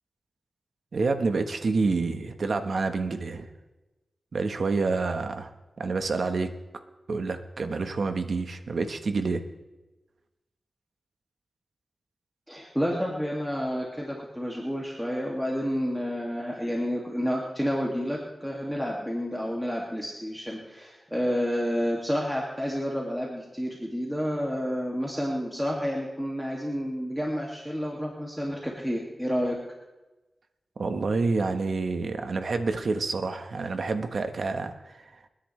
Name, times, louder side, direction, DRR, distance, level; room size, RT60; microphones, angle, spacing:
voice 1, 0.9-3.5 4.3-5.5 5.8-6.6 7.1-9.4 30.8-35.0, right 3 dB, 70° right, 8 dB, 1.2 m, -28 dB
voice 2, 12.5-29.6, equal, ahead, -3 dB, 2.2 m, -30 dB
29.0 x 10.0 x 3.3 m, 1.1 s
wide cardioid pair, 80°, 0 cm